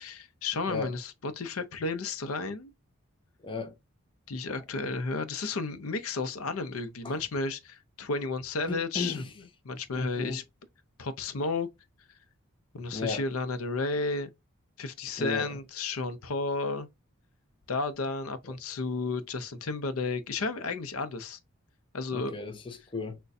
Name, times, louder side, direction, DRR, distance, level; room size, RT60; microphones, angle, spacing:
voice 1, 0.0-2.7 4.3-9.3 9.6-10.4 11.0-11.7 12.7-14.3 14.8-16.9 17.7-21.4 21.9-22.3, left 3 dB, 85° left, 0.6 m, -32 dB
voice 2, 3.4-3.7 7.0-7.1 8.7-9.3 10.0-10.4 12.9-13.2 15.2-15.5 22.1-23.2, left 4 dB, 25° left, 0.5 m, -34 dB
6.3 x 2.2 x 2.6 m
head